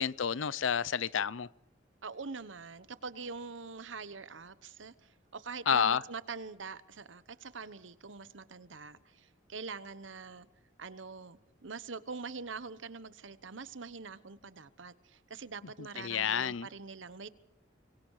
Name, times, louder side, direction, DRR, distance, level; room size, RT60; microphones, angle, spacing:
voice 1, 0.0-1.5 5.7-6.0 16.0-16.7, left 7 dB, 85° left, 0.7 m, -29 dB
voice 2, 2.0-10.5 10.8-17.3, right 4 dB, 75° right, 1.1 m, -44 dB
25.5 x 23.5 x 4.9 m
head